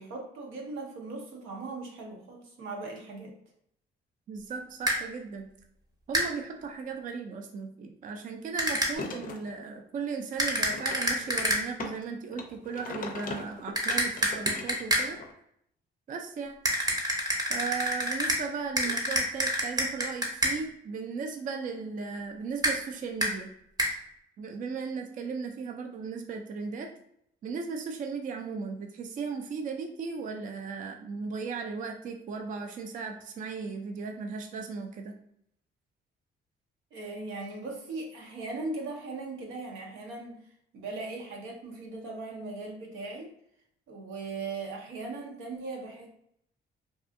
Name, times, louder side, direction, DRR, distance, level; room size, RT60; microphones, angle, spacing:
voice 1, 0.0-3.3 18.8-18.9 36.9-40.4 40.7-43.3 43.9-46.1, right 3 dB, 90° right, 0 dB, 0.7 m, -39 dB
voice 2, 4.3-5.5 6.1-15.2 16.1-16.6 17.5-23.5 24.4-26.9 27.4-35.1, right 5 dB, 40° right, 4 dB, 0.4 m, -36 dB
sound 1, 4.9-5.0 6.1-6.3 8.6-8.9 10.4-11.6 13.8-15.1 16.6-18.4 18.8-20.5 22.6-22.8 23.2-23.3 23.8-23.9, equal, 20° right, 0.7 m, -27 dB
sound 2, 8.9-9.5 10.6-12.0 12.3-15.3, left 3 dB, 45° left, 0.4 m, -40 dB
2.6 x 2.3 x 2.5 m, 0.72 s
cardioid pair, 90°, 20 cm